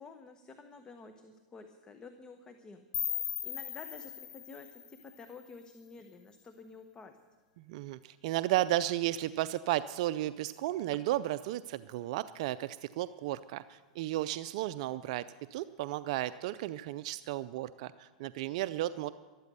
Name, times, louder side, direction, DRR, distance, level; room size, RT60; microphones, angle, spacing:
voice 1, 0.0-7.2, left 4 dB, 20° left, 7 dB, 1.0 m, -51 dB
sound 1, 2.9-5.9, left 10 dB, 75° left, 1.1 m, -39 dB
voice 2, 7.6-15.2 15.5-19.1, right 14 dB, 60° right, 14 dB, 0.4 m, -34 dB
13.5 x 12.5 x 6.8 m, 1.4 s
hypercardioid pair, 125°, 4 cm